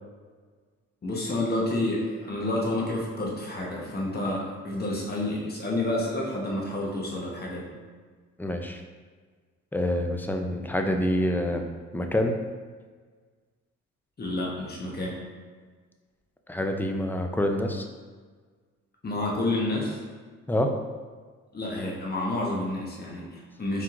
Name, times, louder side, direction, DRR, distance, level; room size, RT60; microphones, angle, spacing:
voice 1, 1.0-7.7 14.2-15.2 19.0-20.0 21.5-23.8, left 1 dB, 30° left, -3 dB, 1.1 m, -29 dB
voice 2, 8.4-8.8 9.7-11.7 11.9-12.4 16.5-17.9 20.5-20.7, left 1 dB, 5° left, 4 dB, 0.4 m, -26 dB
4.5 x 3.6 x 2.5 m, 1.5 s
cardioid pair, 90°, 30 cm